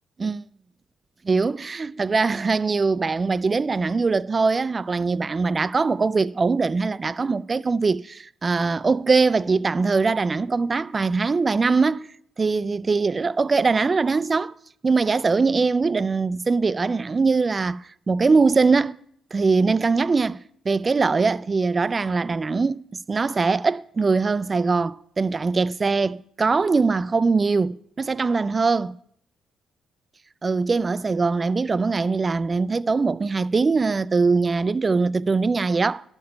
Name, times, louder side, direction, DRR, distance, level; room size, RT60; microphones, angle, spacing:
voice 1, 1.2-12.1 12.4-14.5 14.8-17.8 18.1-19.0 19.3-20.4 20.7-22.8 23.1-28.9 30.4-36.0, right 4 dB, 30° right, 0.3 m, -22 dB
11.5 x 6.7 x 5.7 m
cardioid pair, 90°, 0 cm